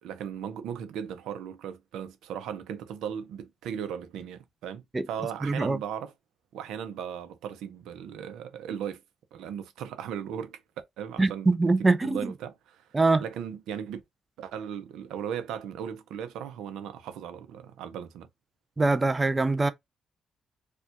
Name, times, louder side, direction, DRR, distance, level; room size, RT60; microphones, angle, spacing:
voice 1, 0.0-6.1 6.5-9.0 9.3-10.6 11.0-11.5 11.8-12.8 13.2-14.0 14.4-18.3, right 8 dB, 85° right, 0.6 m, -37 dB
voice 2, 5.4-5.8 11.2-12.3 12.9-13.2 18.8-19.7, right 3 dB, 20° right, 0.4 m, -23 dB
4.3 x 2.3 x 2.5 m
cardioid pair, 90°, 0 cm